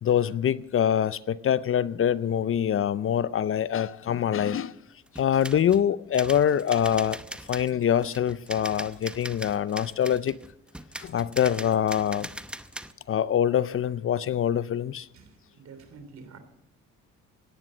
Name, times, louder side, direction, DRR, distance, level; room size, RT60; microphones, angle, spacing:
voice 1, 0.0-4.7 5.2-7.2 7.5-10.3 11.0-12.3 13.1-15.1, left 9 dB, 45° left, 0.5 m, -24 dB
sound 1, 5.1-5.9 6.1-12.9, right 1 dB, 5° right, 0.7 m, -40 dB
voice 2, 15.1-16.4, right 5 dB, 65° right, 3.3 m, -48 dB
17.0 x 11.0 x 6.2 m
cardioid pair, 90°, 30 cm